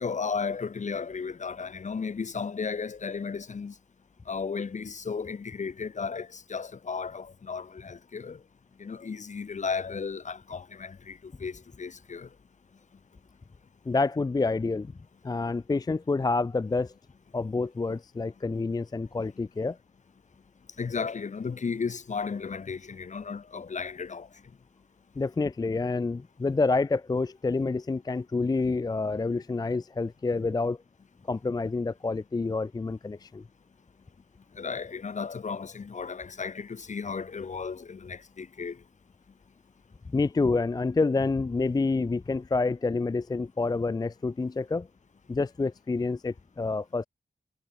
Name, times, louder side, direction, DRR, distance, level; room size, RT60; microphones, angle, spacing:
voice 1, 0.0-3.7 4.3-8.4 8.8-12.3 20.8-24.3 34.6-38.8, left 5 dB, 50° left, 1.1 m, -34 dB
voice 2, 13.9-14.9 15.2-16.9 17.3-19.8 25.2-30.8 31.3-33.4 40.1-44.9 45.3-47.1, left 3 dB, 25° left, 0.5 m, -28 dB
wide cardioid pair, 80°, 16 cm